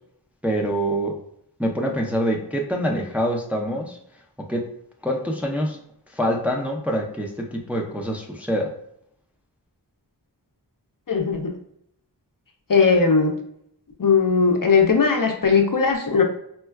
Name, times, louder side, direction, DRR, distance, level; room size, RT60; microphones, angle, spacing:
voice 1, 0.4-1.1 1.6-4.0 4.4-4.6 5.0-5.8 6.1-8.7, equal, 5° right, 0 dB, 0.5 m, -25 dB
voice 2, 11.1-11.5 12.7-13.3 14.0-16.2, left 5 dB, 50° left, 3 dB, 0.6 m, -18 dB
4.4 x 2.2 x 2.2 m, 0.72 s
wide cardioid pair, 45°, 42 cm